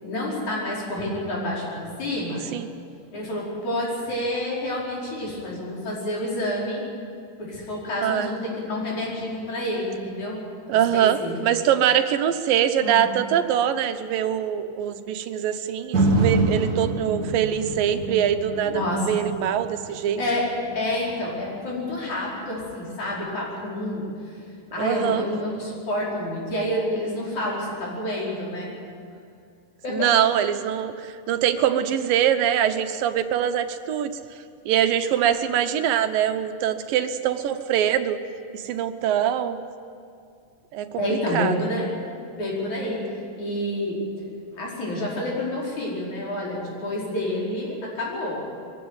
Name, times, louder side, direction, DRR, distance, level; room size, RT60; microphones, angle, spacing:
voice 1, 0.0-2.4 3.1-6.8 7.4-10.4 10.7-11.4 12.8-13.1 18.6-19.1 20.2-20.5 20.7-24.0 24.7-28.7 29.8-30.1 41.0-41.9 42.3-43.0 43.4-44.0 44.5-48.4, left 1 dB, 60° left, -4 dB, 6.2 m, -28 dB
voice 2, 8.0-8.3 10.7-20.2 24.8-25.2 29.9-34.1 34.7-38.2 38.5-39.6 40.7-41.7, right 10 dB, 90° right, 9 dB, 2.7 m, -23 dB
sound 1, 15.9-24.1 24.6-24.7, right 2 dB, 50° right, 1.2 m, -28 dB
22.0 x 16.0 x 9.5 m, 2.3 s
omnidirectional pair, 3.8 m